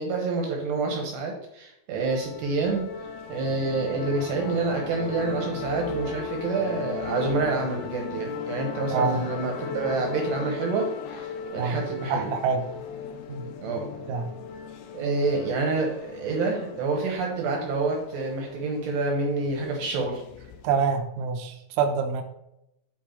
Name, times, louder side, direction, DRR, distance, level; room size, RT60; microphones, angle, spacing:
voice 1, 0.0-2.9 3.3-12.3 13.6-13.9 14.9-20.2, right 3 dB, 70° right, 1 dB, 2.8 m, -28 dB
sound 1, 2.1-20.8, left 5 dB, 75° left, 2.9 m, -37 dB
voice 2, 8.9-9.2 11.6-11.8 12.1-12.6 13.3-13.5 14.1-14.3 20.6-22.2, right 5 dB, 90° right, 4 dB, 3.5 m, -26 dB
10.0 x 4.6 x 4.5 m, 0.83 s
omnidirectional pair, 6.0 m